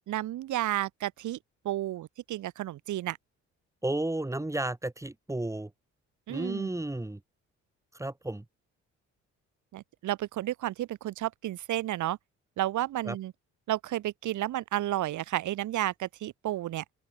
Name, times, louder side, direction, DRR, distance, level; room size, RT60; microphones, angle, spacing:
voice 1, 0.0-1.4 1.6-3.2 6.3-6.7 9.7-12.2 12.6-13.3 13.7-16.8, right 14 dB, 75° right, 1.3 m, -32 dB
voice 2, 3.8-5.7 6.3-7.2 8.0-8.4 13.1-13.2, right 1 dB, 10° right, 2.0 m, -32 dB
open air
cardioid pair, 90°, 30 cm